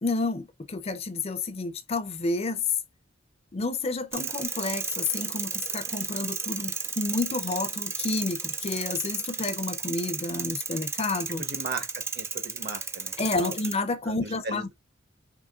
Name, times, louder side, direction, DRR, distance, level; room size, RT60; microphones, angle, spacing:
voice 1, 0.0-2.7 3.5-11.4 13.2-14.7, left 3 dB, 35° left, 0.6 m, -30 dB
sound 1, 4.1-13.7, right 4 dB, 15° right, 0.5 m, -33 dB
voice 2, 11.4-13.1 13.4-13.6 14.1-14.7, right 3 dB, 55° right, 1.1 m, -37 dB
4.9 x 3.0 x 2.4 m
head